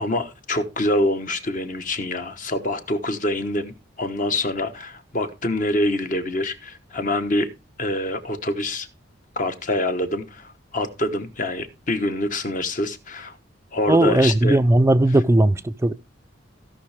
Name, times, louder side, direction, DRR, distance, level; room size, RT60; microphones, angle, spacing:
voice 1, 0.0-7.5 7.8-8.9 9.4-13.4 13.7-14.6, left 1 dB, 45° left, 1.2 m, -25 dB
voice 2, 13.9-15.9, right 1 dB, 15° right, 0.4 m, -17 dB
16.0 x 5.7 x 3.5 m
head